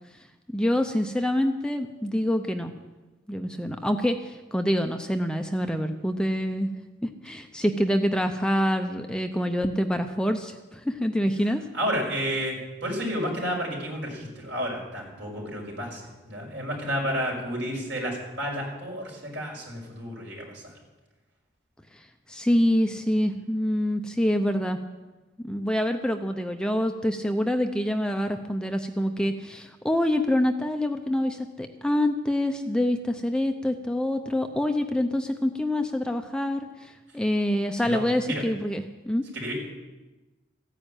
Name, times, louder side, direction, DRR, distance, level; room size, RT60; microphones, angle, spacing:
voice 1, 0.5-2.7 3.3-6.7 7.0-11.6 21.9-24.8 25.4-39.3, left 1 dB, 5° left, 5 dB, 0.6 m, -26 dB
voice 2, 11.7-20.6 37.8-38.4 39.3-39.5, equal, 70° right, -1 dB, 5.6 m, -31 dB
14.5 x 10.0 x 9.0 m, 1.2 s
head